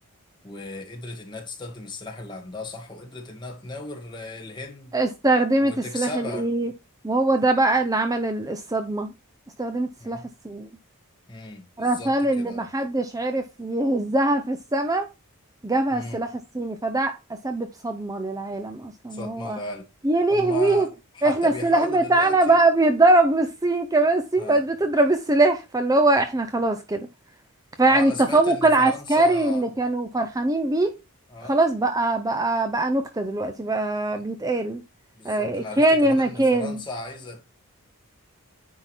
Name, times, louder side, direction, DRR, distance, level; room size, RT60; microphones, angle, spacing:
voice 1, 0.4-5.0 5.6-6.5 10.0-10.3 11.3-12.7 15.9-16.2 19.1-19.9 20.3-22.6 24.4-24.6 27.9-29.7 31.3-31.7 34.1-34.2 35.2-37.5, left 2 dB, 20° left, 2.0 m, -36 dB
voice 2, 4.9-6.7 7.0-9.1 9.6-10.2 10.4-10.7 11.8-15.1 15.6-16.3 16.5-17.1 17.4-19.6 20.0-20.9 21.2-27.1 27.8-30.9 31.4-34.8 35.2-36.8, right 2 dB, 15° right, 0.7 m, -22 dB
9.8 x 3.8 x 4.5 m
head